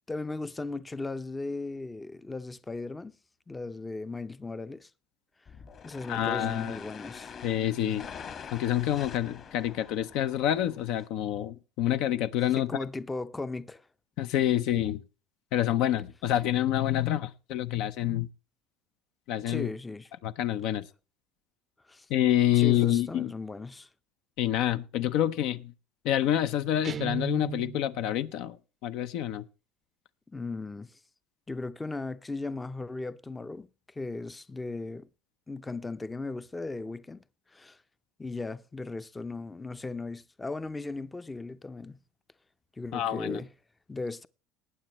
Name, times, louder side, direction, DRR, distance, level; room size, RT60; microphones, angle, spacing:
voice 1, 0.1-3.1 3.5-4.9 5.8-7.4 12.6-13.9 19.5-20.1 21.9-22.1 22.5-23.9 30.3-31.0 31.5-35.1 35.5-37.2 37.5-37.8 38.2-42.0 42.8-43.5 43.9-44.3, left 3 dB, 15° left, 0.5 m, -37 dB
sound 1, 5.5-11.1, left 7 dB, 40° left, 1.5 m, -45 dB
voice 2, 6.1-6.8 7.4-8.0 8.5-12.7 14.2-15.0 15.5-18.3 19.3-19.7 20.2-20.9 22.1-23.3 24.4-25.7 26.0-28.6 28.8-29.4 42.9-43.4, left 12 dB, 65° left, 0.6 m, -27 dB
Guitar, 26.8-28.0, right 10 dB, 35° right, 0.5 m, -36 dB
19.5 x 9.0 x 3.0 m
supercardioid pair, 110°, 0 cm